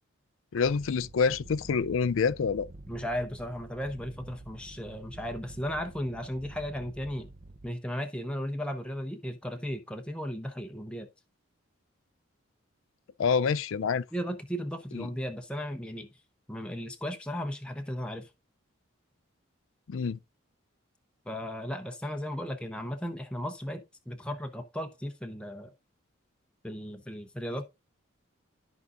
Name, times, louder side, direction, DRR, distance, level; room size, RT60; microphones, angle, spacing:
voice 1, 0.5-2.7 13.2-14.0 14.9-15.1 19.9-20.2, left 5 dB, 75° left, 0.4 m, -27 dB
sound 1, 0.6-7.7, right 2 dB, 35° right, 0.6 m, -48 dB
voice 2, 2.9-7.3 7.6-11.1 14.1-16.1 16.5-18.3 21.3-25.7 26.6-27.7, equal, 5° left, 0.7 m, -35 dB
13.5 x 4.9 x 2.4 m
head